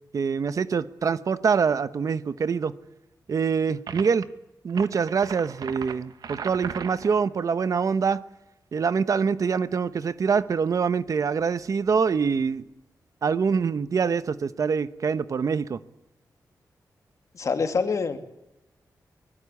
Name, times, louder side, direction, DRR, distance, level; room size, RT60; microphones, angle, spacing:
voice 1, 0.1-2.7 3.3-4.3 4.6-8.2 8.7-12.6 13.2-15.8, right 6 dB, 55° right, 1.0 m, -25 dB
sound 1, 3.9-4.2 4.7-7.2, right 6 dB, 75° right, 1.5 m, -37 dB
voice 2, 17.3-18.2, left 5 dB, 50° left, 2.7 m, -25 dB
24.0 x 18.5 x 8.4 m
wide cardioid pair, 145°, 7 cm